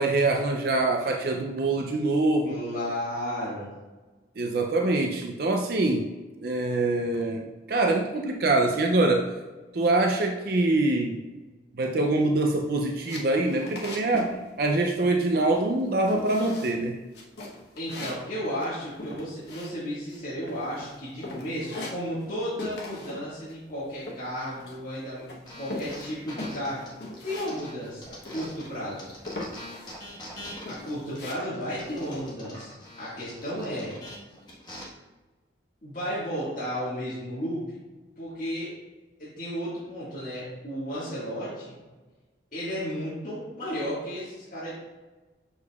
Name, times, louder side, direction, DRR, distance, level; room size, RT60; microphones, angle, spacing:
voice 1, 0.0-2.6 4.4-6.1 6.4-9.3 9.7-11.2 11.8-17.0, right 2 dB, 55° right, 3 dB, 0.5 m, -24 dB
voice 2, 2.4-3.7 17.8-26.9 27.2-29.1 30.7-32.7 33.0-33.9 35.8-37.8 38.2-38.7 39.2-41.8 42.5-44.7, equal, 45° left, -11 dB, 1.7 m, -33 dB
sound 1, 13.1-14.4 14.6-15.1 15.3-15.8 16.1-16.8 17.1-20.2 20.5-20.9 21.2-22.3 22.6-23.2 23.5-24.9 25.3-27.5 27.8-27.9 28.2-28.8 29.3-30.0 30.4-31.3, left 2 dB, 60° left, 1.1 m, -39 dB
sound 2, 25.4-28.7 29.0-34.8, left 1 dB, 20° left, 1.3 m, -43 dB
6.8 x 6.5 x 2.4 m, 1.2 s
head